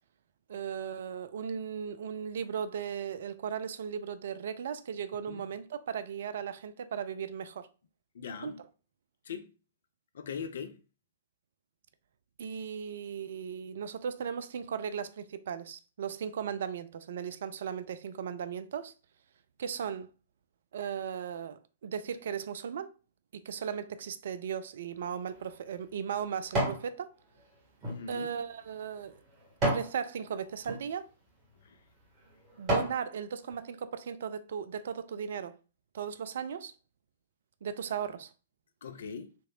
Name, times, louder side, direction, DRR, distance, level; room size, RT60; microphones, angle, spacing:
voice 1, 0.5-7.7 8.4-8.5 12.4-18.9 19.6-20.1 20.7-22.9 23.3-27.1 28.1-29.1 29.6-31.0 32.6-35.5 35.9-36.7 37.6-38.3, right 7 dB, 55° right, 0.3 m, -37 dB
voice 2, 8.1-8.6 9.3-9.5 10.1-10.8 27.9-28.3 31.6-31.8 38.8-39.3, left 6 dB, 60° left, 0.4 m, -40 dB
sound 1, 25.0-26.9 27.3-29.9 30.5-30.8 31.5-31.6 32.1-33.0 33.5-33.6, right 1 dB, 30° right, 2.3 m, -33 dB
4.5 x 3.1 x 2.6 m
figure-of-eight pair, 110°, 0 cm